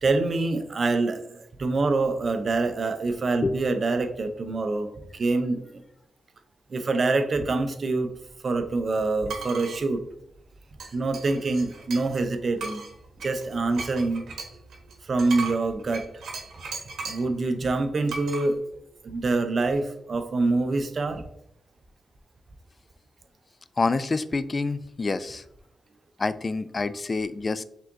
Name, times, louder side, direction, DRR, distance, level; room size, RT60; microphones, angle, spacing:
voice 1, 0.0-4.9 5.1-5.8 6.7-8.1 8.4-10.0 10.9-12.8 13.2-16.1 17.1-18.6 19.0-21.2, right 3 dB, 50° right, 7 dB, 0.7 m, -26 dB
sound 1, 9.3-9.8 10.8-12.2 12.6-17.3 18.1-18.5, right 4 dB, 85° right, 1.1 m, -37 dB
voice 2, 23.8-25.4 26.2-27.6, left 3 dB, 35° left, 14 dB, 0.3 m, -27 dB
5.6 x 3.6 x 2.6 m, 0.80 s
cardioid pair, 85°, 0 cm